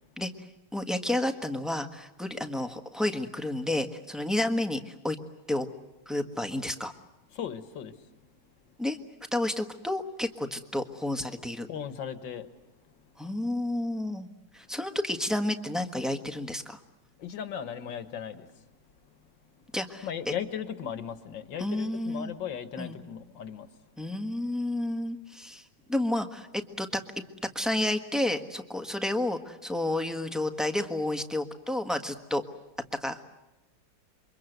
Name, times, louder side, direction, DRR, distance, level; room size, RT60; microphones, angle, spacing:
voice 1, 0.7-5.2 5.5-5.7 6.1-6.9 8.8-9.0 9.3-11.7 13.2-14.3 14.5-16.8 19.7-20.3 21.6-22.3 22.8-22.9 24.0-25.6 25.9-27.0 27.5-32.4 33.0-33.2, left 1 dB, ahead, 1.2 m, -30 dB
voice 2, 7.3-8.2 11.7-12.5 13.0-13.1 17.2-18.6 19.6-19.7 20.0-23.7, left 8 dB, 80° left, 2.1 m, -37 dB
28.0 x 24.0 x 8.0 m
omnidirectional pair, 2.0 m